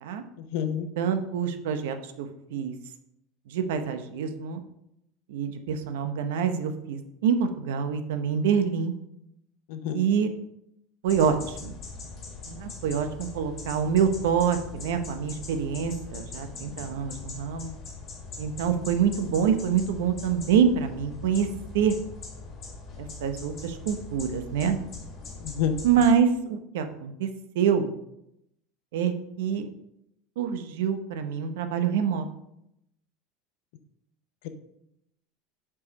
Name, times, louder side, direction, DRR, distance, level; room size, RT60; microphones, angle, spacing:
voice 1, 0.4-0.9 9.7-10.0 25.4-25.7 34.4-34.5, left 9 dB, 60° left, 8 dB, 0.8 m, -29 dB
voice 2, 1.0-2.7 3.5-4.6 5.3-8.9 9.9-10.3 11.0-11.8 12.5-17.7 18.4-21.5 21.7-22.0 23.0-24.8 25.8-27.3 27.5-27.9 28.9-29.7 30.4-32.2, right 7 dB, 85° right, 8 dB, 0.8 m, -26 dB
sound 1, 11.1-26.1, left 4 dB, 25° left, 1.6 m, -41 dB
5.7 x 4.8 x 5.2 m, 0.80 s
supercardioid pair, 165°, 0 cm